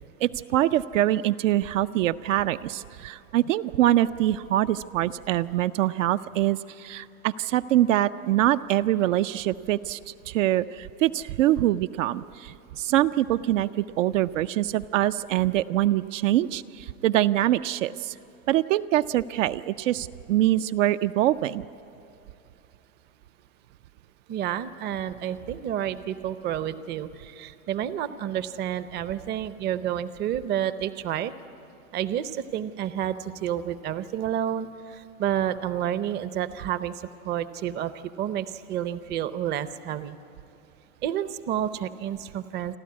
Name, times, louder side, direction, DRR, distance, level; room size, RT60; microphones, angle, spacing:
voice 1, 0.2-18.2 18.5-21.6, right 14 dB, 60° right, 10 dB, 0.6 m, -24 dB
voice 2, 24.3-31.3 31.9-36.9 37.2-37.9 38.2-40.2 41.0-42.8, right 10 dB, 25° right, 14 dB, 0.6 m, -30 dB
29.0 x 12.0 x 9.5 m, 2.9 s
hypercardioid pair, 130°, 42 cm